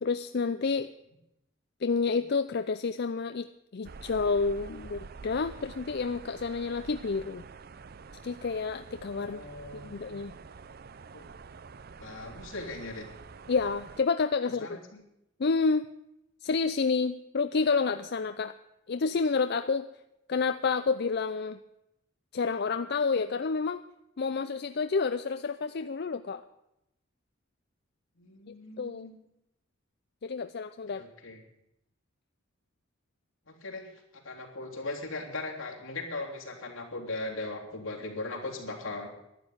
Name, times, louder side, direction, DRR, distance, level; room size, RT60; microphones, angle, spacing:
voice 1, 0.0-0.9 1.8-3.5 3.7-7.4 8.2-9.4 9.7-10.4 13.5-14.7 15.4-15.9 16.4-18.5 18.9-19.9 20.3-21.6 22.3-23.8 24.2-26.4 28.8-29.1 30.2-31.0, left 4 dB, 55° left, 11 dB, 0.5 m, -29 dB
sound 1, 3.8-14.0, right 4 dB, 50° right, 0.5 m, -47 dB
voice 2, 9.1-10.2 11.1-11.3 12.0-13.1 14.6-15.0 28.2-29.2 30.9-31.4 33.5-33.9 34.2-39.1, left 2 dB, 80° left, -1 dB, 3.3 m, -39 dB
12.0 x 10.5 x 9.3 m, 0.85 s
head